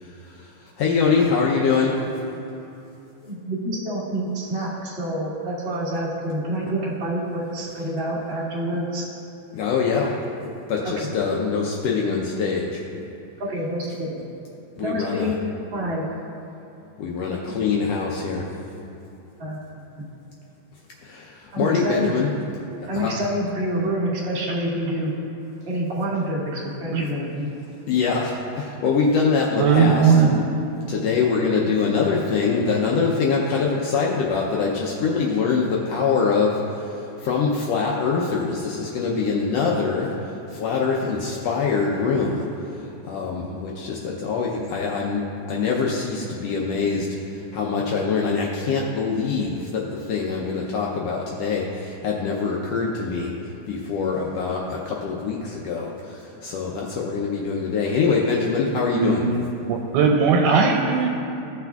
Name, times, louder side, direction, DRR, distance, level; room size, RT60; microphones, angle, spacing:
voice 1, 0.0-2.1 9.5-10.2 10.7-12.8 14.8-15.3 17.0-18.5 21.0-22.3 22.8-23.1 27.9-30.1 30.9-42.4 42.8-47.1 47.3-59.2, left 5 dB, 90° left, -3 dB, 1.4 m, -24 dB
voice 2, 3.2-9.0 11.0-11.1 13.4-14.2 14.8-16.0 19.4-19.6 20.0-20.1 21.5-22.1 22.9-25.1 25.7-27.5, equal, 50° right, -7 dB, 0.7 m, -27 dB
voice 3, 29.6-30.4 58.9-61.1, right 5 dB, 85° right, 0 dB, 2.1 m, -19 dB
16.0 x 5.9 x 2.3 m, 2.8 s
omnidirectional pair, 3.7 m